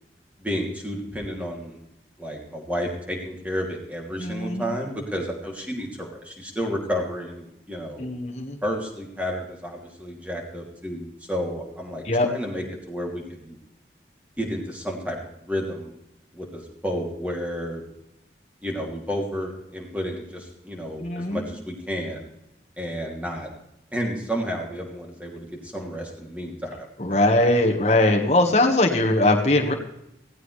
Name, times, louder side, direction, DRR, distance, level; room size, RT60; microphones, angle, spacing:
voice 1, 0.4-1.8 2.2-8.1 8.6-13.6 14.4-15.9 16.3-17.8 18.6-22.3 22.8-23.5 23.9-26.9, equal, 10° right, -1 dB, 2.8 m, -31 dB
voice 2, 4.2-4.7 8.0-8.6 12.0-12.3 21.0-21.5 27.0-29.7, left 1 dB, 40° left, 1 dB, 1.5 m, -21 dB
17.0 x 15.0 x 3.3 m, 0.83 s
head